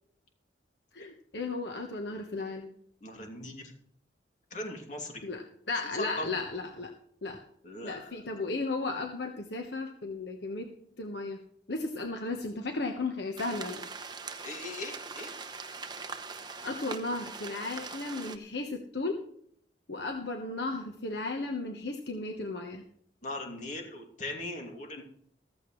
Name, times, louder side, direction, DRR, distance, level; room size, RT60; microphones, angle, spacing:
voice 1, 0.9-2.7 5.2-5.4 5.7-6.9 7.2-7.4 7.8-10.7 11.0-11.4 11.7-13.9 16.6-19.2 19.9-22.8, left 3 dB, 70° left, 4 dB, 1.2 m, -35 dB
voice 2, 3.0-3.7 4.5-5.2 6.0-6.3 7.6-8.4 14.4-15.3 23.2-25.0, left 2 dB, 40° left, 2 dB, 2.7 m, -39 dB
sound 1, 13.4-18.4, right 4 dB, 25° right, 0.9 m, -42 dB
14.5 x 14.5 x 3.2 m, 0.67 s
head